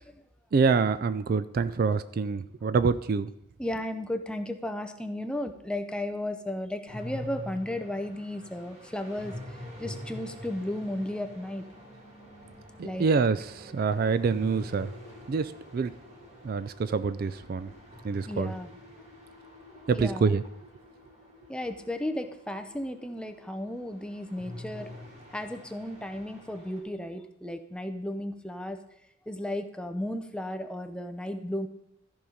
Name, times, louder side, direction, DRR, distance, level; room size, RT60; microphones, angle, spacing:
voice 1, 0.5-3.3 12.8-14.9 15.3-15.9 16.4-17.7 18.0-18.5 19.9-20.4, right 5 dB, 50° right, 14 dB, 0.3 m, -26 dB
voice 2, 3.6-9.3 9.8-11.6 12.8-13.1 18.3-18.7 19.7-20.3 21.5-24.9 25.3-28.8 29.3-31.7, left 1 dB, 5° left, 7 dB, 0.6 m, -34 dB
sound 1, 6.8-26.8, left 1 dB, 35° right, 3.9 m, -46 dB
13.5 x 5.4 x 5.0 m, 0.78 s
head